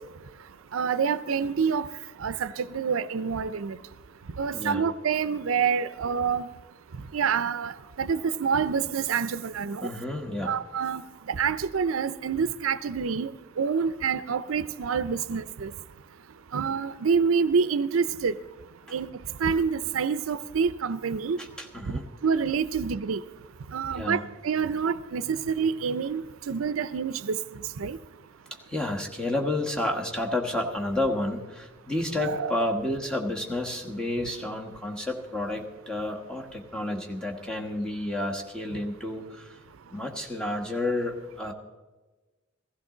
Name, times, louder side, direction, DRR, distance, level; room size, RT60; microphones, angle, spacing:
voice 1, 0.7-1.9 2.2-3.8 4.4-6.5 7.1-9.9 10.5-11.0 11.3-13.3 13.6-15.7 16.5-18.4 18.9-19.1 19.4-21.4 21.9-23.2 23.7-27.4 27.8-28.0 32.2-32.6, right 6 dB, 90° right, 0.5 m, -27 dB
voice 2, 9.8-10.6 21.4-22.1 23.9-24.2 28.7-39.6 39.9-41.5, left 1 dB, 5° left, 1.5 m, -30 dB
16.0 x 15.5 x 3.9 m
head